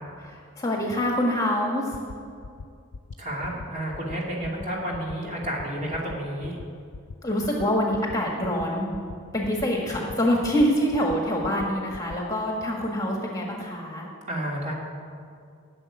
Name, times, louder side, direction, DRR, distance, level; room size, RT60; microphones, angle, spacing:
voice 1, 0.2-1.9 7.2-8.9 9.3-14.1, equal, 15° left, -1 dB, 1.5 m, -25 dB
sound 1, 1.9-2.2 2.4-2.6 2.9-3.1 3.4-3.6 3.9-4.1 4.4-4.6 4.9-5.1 5.4-5.6 5.9-6.1 6.4-6.6 6.9-7.1 7.4-7.6 7.9-8.1 8.4-8.6 8.9-9.1 9.4-9.6 9.9-10.1 10.4-10.6 10.9-11.2 11.4-11.7 11.9-12.2, left 4 dB, 80° left, 0.5 m, -39 dB
voice 2, 3.2-6.6 14.3-14.7, right 1 dB, 35° right, -3 dB, 2.7 m, -31 dB
14.0 x 6.9 x 9.7 m, 2.4 s
head